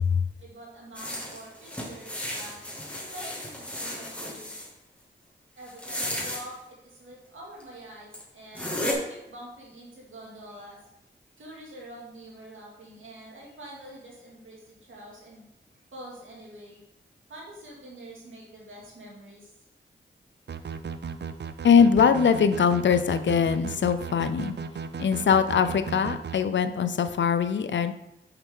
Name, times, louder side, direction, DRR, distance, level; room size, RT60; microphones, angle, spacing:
voice 1, 0.4-2.6 2.9-4.6 5.6-10.8 11.4-15.4 15.9-16.8 17.3-19.5, right 1 dB, 80° right, -4 dB, 2.3 m, -46 dB
sound 1, 0.9-4.7 5.7-6.4 7.6-7.7 8.1-8.2 8.5-8.9, left 1 dB, 5° left, 2.0 m, -34 dB
sound 2, 20.5-26.4, right 6 dB, 60° right, 0.5 m, -36 dB
voice 2, 21.6-24.5 25.0-27.9, left 6 dB, 65° left, 11 dB, 0.5 m, -22 dB
5.7 x 5.6 x 3.7 m, 0.87 s
cardioid pair, 40°, 20 cm